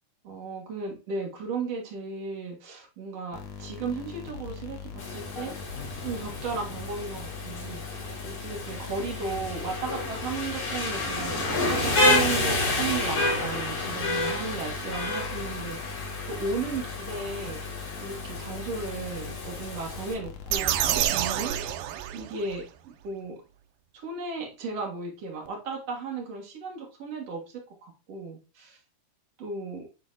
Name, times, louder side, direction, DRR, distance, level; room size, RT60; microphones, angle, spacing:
voice 1, 0.2-5.5 6.0-7.8 8.2-16.0 16.3-17.6 18.0-21.5 22.1-22.6 23.0-23.4 24.0-27.4 27.8-28.8 29.4-29.9, right 4 dB, 50° right, 0 dB, 2.2 m, -35 dB
sound 1, 3.3-22.1, left 5 dB, 80° left, 1.5 m, -41 dB
Rain, 5.0-20.1, left 2 dB, 60° left, 4.5 m, -30 dB
sound 2, 20.5-22.6, right 12 dB, 90° right, 1.8 m, -28 dB
9.6 x 3.9 x 2.6 m, 0.31 s
omnidirectional pair, 4.4 m